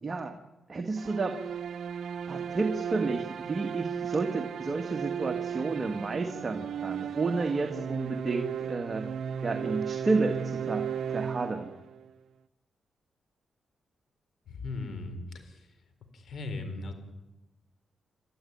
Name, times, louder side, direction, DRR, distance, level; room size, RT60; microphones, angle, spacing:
voice 1, 0.0-0.3 0.7-1.4 2.3-9.1 9.4-11.7, right 3 dB, 35° right, 5 dB, 1.8 m, -31 dB
sound 1, 1.0-12.1, right 8 dB, 75° right, 0.8 m, -35 dB
voice 2, 14.5-15.7 16.1-16.9, left 3 dB, 70° left, 8 dB, 4.2 m, -38 dB
29.5 x 13.0 x 9.5 m, 1.0 s
cardioid pair, 90°, 0 cm